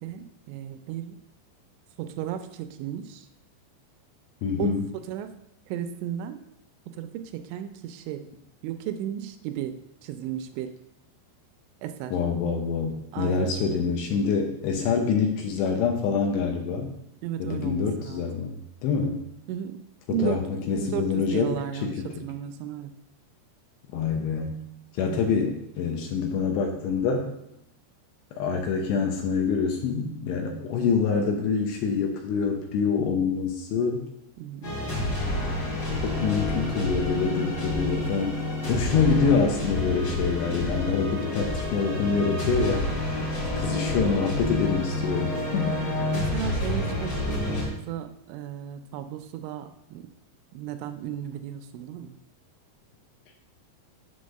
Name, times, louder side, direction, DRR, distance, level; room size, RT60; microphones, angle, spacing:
voice 1, 0.0-1.2 2.0-3.3 4.6-4.8 5.1-5.3 5.7-6.4 6.9-8.3 8.6-10.7 11.8-12.1 13.1-13.6 17.2-18.5 19.5-19.8 20.1-20.4 20.7-22.9 25.0-25.2 34.4-34.8 43.2-43.4 45.8-50.1 50.5-52.2, right 10 dB, 85° right, 8 dB, 2.8 m, -34 dB
voice 2, 4.4-4.8 12.1-16.9 17.4-19.2 20.1-21.6 21.8-22.1 23.9-24.6 24.9-27.3 28.4-34.1 36.0-38.4 38.7-42.9 43.6-45.8, left 5 dB, 75° left, 3 dB, 2.8 m, -26 dB
sound 1, 34.6-47.6, left 2 dB, 50° left, 1.4 m, -28 dB
7.8 x 3.5 x 6.4 m, 0.81 s
omnidirectional pair, 5.4 m